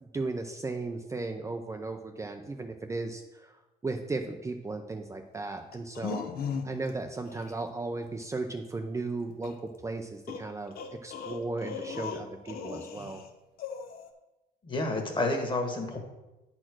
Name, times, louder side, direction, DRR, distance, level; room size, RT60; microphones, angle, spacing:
voice 1, 0.0-6.2 6.6-13.2, right 3 dB, 15° right, 4 dB, 0.6 m, -36 dB
sound 1, 5.7-6.9 7.3-7.5 9.4-9.5 10.3-13.3 13.6-14.1, left 6 dB, 65° left, 1.0 m, -37 dB
voice 2, 14.6-16.0, left 2 dB, 30° left, 4 dB, 1.7 m, -29 dB
8.6 x 4.4 x 6.1 m, 1.0 s
cardioid pair, 110°, 17 cm